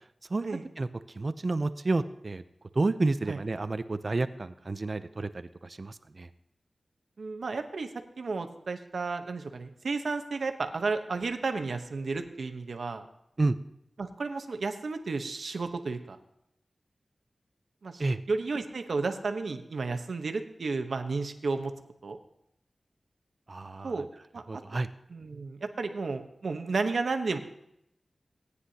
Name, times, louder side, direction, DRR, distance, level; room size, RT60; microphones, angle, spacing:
voice 1, 1.1-2.4 2.7-6.3 13.4-13.6 18.0-18.2 23.5-24.1 24.5-24.9, right 2 dB, 45° right, 12 dB, 0.5 m, -30 dB
voice 2, 7.2-7.9 8.2-13.0 14.0-16.2 17.8-18.0 18.3-21.7 22.0-22.2 23.8-24.1 24.3-24.6 25.1-27.4, right 4 dB, 80° right, 6 dB, 1.0 m, -32 dB
18.0 x 9.6 x 2.8 m, 0.78 s
wide cardioid pair, 80°, 0 cm